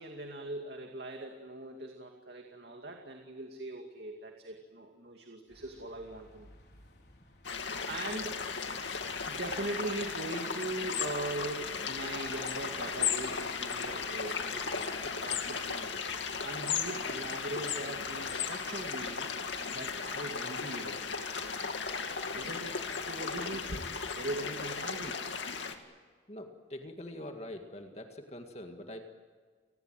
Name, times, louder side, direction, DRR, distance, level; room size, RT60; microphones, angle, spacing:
voice 1, 0.0-6.5 7.9-8.4 9.2-16.1 16.4-19.3 19.7-21.3 22.3-25.2, right 2 dB, 65° right, 2 dB, 2.4 m, -41 dB
sound 1, 5.5-18.5, left 1 dB, 65° left, 4.3 m, -59 dB
sound 2, 7.4-25.7, left 5 dB, 85° left, 2.4 m, -36 dB
voice 2, 26.3-29.0, left 1 dB, 35° left, 4 dB, 2.0 m, -44 dB
29.5 x 20.5 x 9.1 m, 1.5 s
head